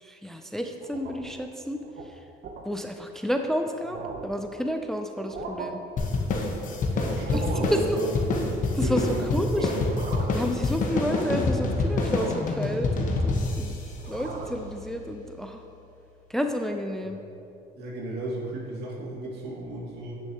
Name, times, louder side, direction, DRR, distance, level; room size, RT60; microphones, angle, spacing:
voice 1, 0.0-2.2 2.6-5.8 7.3-7.4 7.7-8.0 8.7-9.7 10.3-13.8 14.0-15.6 16.3-17.2, equal, 5° left, 5 dB, 0.4 m, -30 dB
sound 1, 0.8-1.4 1.8-2.0 2.4-2.7 3.3-3.4 3.7-4.4 5.1-5.7 7.1-7.8 8.9-9.4 9.8-10.5 10.9-11.5 12.1-12.6 12.9-13.6 14.0-14.6, right 4 dB, 60° right, 0.7 m, -39 dB
sound 2, 6.0-14.8, left 3 dB, 50° left, 1.0 m, -27 dB
voice 2, 6.9-8.2 8.7-9.9 17.8-20.2, right 1 dB, 80° right, -4 dB, 1.8 m, -34 dB
9.7 x 6.4 x 2.9 m, 2.6 s
cardioid pair, 110°, 17 cm